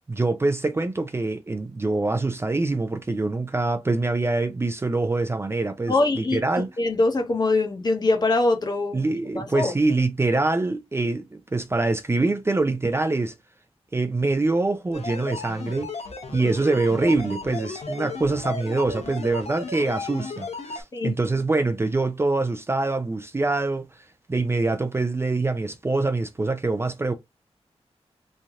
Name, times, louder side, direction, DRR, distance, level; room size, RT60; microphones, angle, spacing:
voice 1, 0.1-6.7 8.9-13.4 13.9-15.9 16.3-23.9 24.3-27.1, right 2 dB, 25° right, 0.5 m, -24 dB
voice 2, 5.9-6.4 6.8-9.1 9.3-9.7 16.4-16.5 20.9-21.1, left 2 dB, 40° left, 0.9 m, -23 dB
sound 1, 14.9-20.8, left 3 dB, 80° left, 1.0 m, -35 dB
3.2 x 2.7 x 3.5 m
wide cardioid pair, 160°, 11 cm